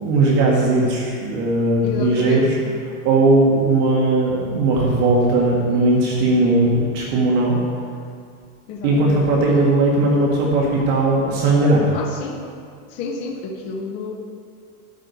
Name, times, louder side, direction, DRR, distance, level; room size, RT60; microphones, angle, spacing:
voice 1, 0.0-2.6 3.0-7.6 8.8-11.9, right 2 dB, 45° right, -3 dB, 1.9 m, -18 dB
voice 2, 1.8-2.5 8.7-9.2 11.9-12.5 12.9-14.1, left 4 dB, 15° left, 2 dB, 0.4 m, -30 dB
12.5 x 5.0 x 8.2 m, 2.2 s
supercardioid pair, 160°, 43 cm